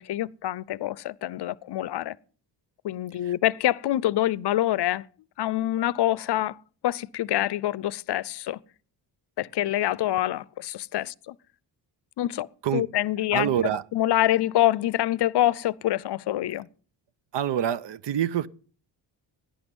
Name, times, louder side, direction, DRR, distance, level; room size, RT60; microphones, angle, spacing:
voice 1, 0.0-2.2 2.8-5.1 5.4-6.6 6.8-8.6 9.4-11.4 12.2-12.5 12.7-13.5 13.9-16.7, left 13 dB, 65° left, 0.6 m, -26 dB
voice 2, 13.3-13.8 17.3-18.5, right 10 dB, 70° right, 0.7 m, -26 dB
17.0 x 10.0 x 5.4 m
wide cardioid pair, 125°, 45 cm